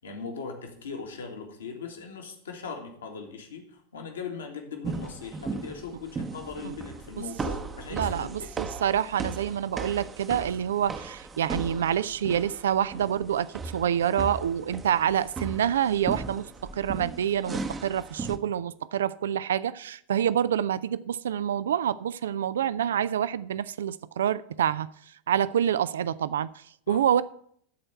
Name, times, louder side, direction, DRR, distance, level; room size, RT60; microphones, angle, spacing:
voice 1, 0.0-8.5 26.9-27.0, left 5 dB, 65° left, 1.8 m, -39 dB
sound 1, 4.8-18.4, right 4 dB, 20° right, 0.8 m, -37 dB
voice 2, 7.9-24.9 25.3-27.2, right 9 dB, 60° right, 0.3 m, -27 dB
12.5 x 4.4 x 7.9 m
figure-of-eight pair, 90°, 0 cm